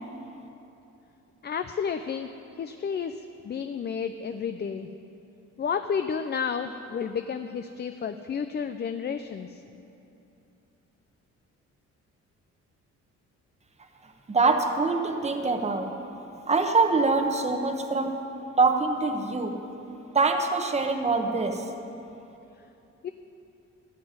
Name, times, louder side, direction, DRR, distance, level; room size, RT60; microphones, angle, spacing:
voice 1, 1.4-2.3 2.6-4.9 5.6-9.6 23.0-23.1, left 6 dB, 35° left, 8 dB, 0.5 m, -31 dB
voice 2, 14.0-15.9 16.5-18.2 18.6-19.6 20.1-21.7, right 3 dB, 20° right, 5 dB, 1.1 m, -24 dB
14.0 x 6.2 x 9.4 m, 2.9 s
cardioid pair, 90°, 30 cm